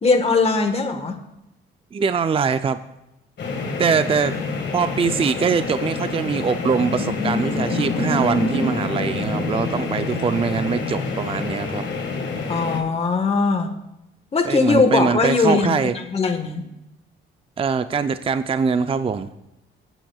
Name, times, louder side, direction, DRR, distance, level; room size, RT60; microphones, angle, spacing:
voice 1, 0.0-1.2 12.5-13.7 14.3-16.6, left 4 dB, 30° left, 4 dB, 1.4 m, -20 dB
voice 2, 1.9-2.8 3.8-4.3 4.7-11.8 14.4-16.0 17.6-19.3, right 6 dB, 25° right, 11 dB, 0.5 m, -22 dB
sound 1, 3.4-12.8, left 3 dB, 55° left, 1.9 m, -26 dB
19.5 x 9.0 x 2.4 m, 0.88 s
cardioid pair, 80°, 21 cm